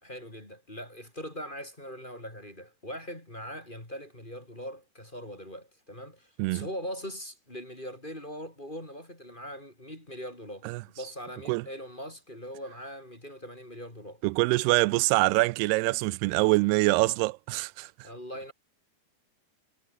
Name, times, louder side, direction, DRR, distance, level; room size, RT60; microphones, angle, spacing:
voice 1, 0.0-14.2 18.0-18.5, equal, 10° left, 3.8 m, -41 dB
voice 2, 14.2-18.1, right 22 dB, 85° right, 2.6 m, -25 dB
omnidirectional pair, 4.6 m